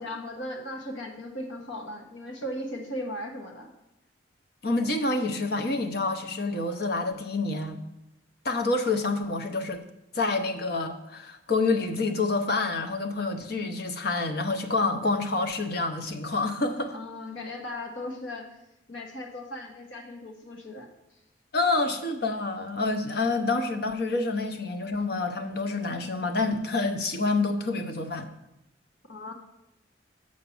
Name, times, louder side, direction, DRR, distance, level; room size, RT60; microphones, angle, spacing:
voice 1, 0.0-3.7 16.9-18.6 18.9-20.9 29.0-29.3, left 1 dB, 75° left, 3 dB, 1.1 m, -37 dB
voice 2, 4.6-7.8 8.4-9.8 10.1-17.0 21.5-28.3, left 3 dB, 55° left, 7 dB, 0.7 m, -27 dB
6.4 x 5.9 x 7.0 m, 0.89 s
head